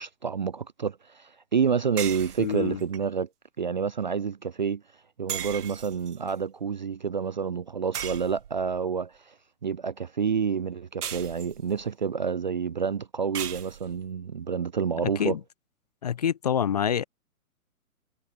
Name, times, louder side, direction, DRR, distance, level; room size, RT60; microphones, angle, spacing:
voice 1, 0.0-3.3 3.6-4.8 5.2-9.3 9.6-15.4, right 6 dB, 35° right, 0.5 m, -29 dB
sound 1, 2.0-3.0 5.3-6.3 7.9-8.8 11.0-11.9 13.3-14.1, right 9 dB, 90° right, 0.9 m, -37 dB
voice 2, 2.4-2.8 15.2-15.4 16.0-17.0, left 8 dB, 30° left, 0.6 m, -26 dB
hypercardioid pair, 155°, 44 cm